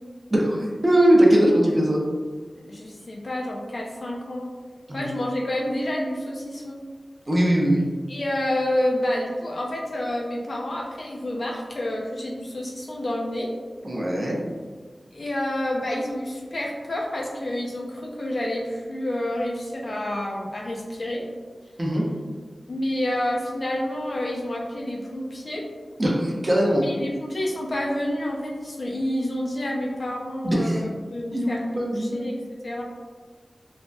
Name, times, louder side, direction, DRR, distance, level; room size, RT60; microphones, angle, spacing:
voice 1, 0.3-2.0 4.9-5.1 7.3-7.8 13.8-14.4 21.8-22.1 26.0-26.9 30.4-30.8 31.3-32.2, right 1 dB, 30° right, -2 dB, 0.5 m, -20 dB
voice 2, 2.7-4.5 4.9-6.8 8.1-13.5 15.1-21.3 22.7-25.6 26.8-32.4 32.6-32.8, left 1 dB, 60° left, -1 dB, 0.5 m, -29 dB
3.2 x 2.1 x 2.6 m, 1.4 s
wide cardioid pair, 75°, 0 cm